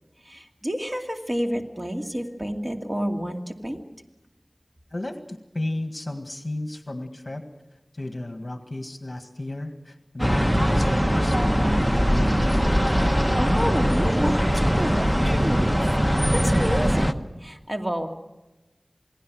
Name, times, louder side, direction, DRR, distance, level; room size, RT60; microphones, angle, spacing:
voice 1, 0.3-3.8 12.9-15.8 16.1-18.1, equal, 30° right, 3 dB, 2.4 m, -30 dB
voice 2, 4.9-7.4 7.9-12.3, left 1 dB, 45° left, 5 dB, 1.8 m, -34 dB
sound 1, 10.2-17.1, equal, 10° right, 1.0 m, -21 dB
28.5 x 19.0 x 6.3 m, 1.1 s
wide cardioid pair, 55°, 0 cm